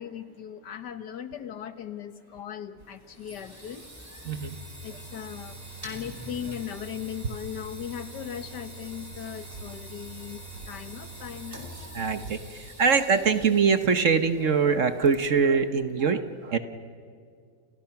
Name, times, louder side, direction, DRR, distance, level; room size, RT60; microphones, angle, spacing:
voice 1, 0.0-3.8 4.8-5.6 5.8-10.4 10.7-11.7, left 9 dB, 75° left, 10 dB, 1.8 m, -38 dB
sound 1, 2.8-15.6, right 2 dB, 10° right, 4.5 m, -44 dB
voice 2, 4.2-4.6 11.9-16.6, right 5 dB, 50° right, 9 dB, 1.3 m, -23 dB
29.5 x 29.5 x 5.9 m, 2.2 s
omnidirectional pair, 1.8 m